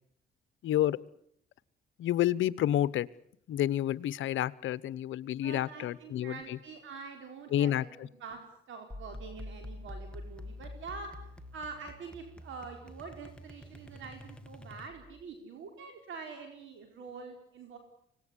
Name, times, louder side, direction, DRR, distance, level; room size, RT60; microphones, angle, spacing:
voice 1, 0.6-1.0 2.0-3.1 3.5-6.6 7.5-8.1, left 12 dB, 75° left, 19 dB, 1.0 m, -29 dB
voice 2, 5.4-8.4 8.7-11.2 11.5-17.8, right 5 dB, 75° right, 5 dB, 4.7 m, -45 dB
sound 1, 8.9-15.3, left 1 dB, 5° left, 1.9 m, -47 dB
25.5 x 19.0 x 10.0 m, 0.71 s
cardioid pair, 90°, 20 cm